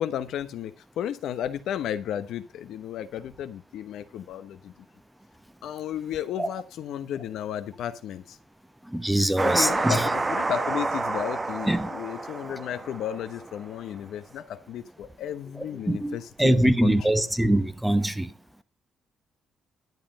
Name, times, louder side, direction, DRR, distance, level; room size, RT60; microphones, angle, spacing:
voice 1, 0.0-4.7 5.6-8.4 9.1-17.1, left 10 dB, 80° left, 1.0 m, -33 dB
voice 2, 8.9-10.0 11.7-11.9 15.9-18.3, right 1 dB, 5° right, 1.1 m, -23 dB
sound 1, 9.4-13.6, right 3 dB, 25° right, 1.0 m, -29 dB
11.0 x 7.5 x 5.4 m
cardioid pair, 90°, 0 cm